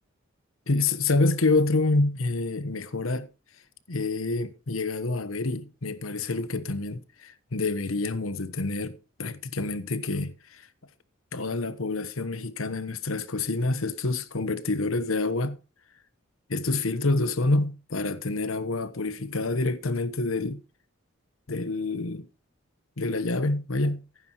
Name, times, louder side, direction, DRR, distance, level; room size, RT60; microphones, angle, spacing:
voice 1, 0.7-3.3 3.9-10.6 11.3-15.6 16.5-20.6 21.5-22.3 23.0-24.0, left 2 dB, 85° left, 1.1 m, -27 dB
15.5 x 9.5 x 3.0 m
head